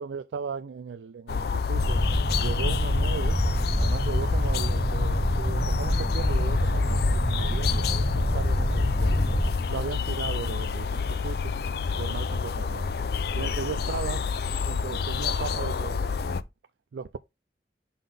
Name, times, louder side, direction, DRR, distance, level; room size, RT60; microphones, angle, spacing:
voice 1, 0.0-2.0 2.4-3.4 3.8-9.2 9.7-11.5 12.0-12.9 13.3-14.2 14.6-16.3 16.9-17.2, right 5 dB, 85° right, 0.4 m, -36 dB
sound 1, 1.3-16.4, left 5 dB, 60° left, 0.4 m, -28 dB
sound 2, 1.7-9.5, equal, ahead, 0.3 m, -26 dB
5.6 x 5.5 x 3.4 m
head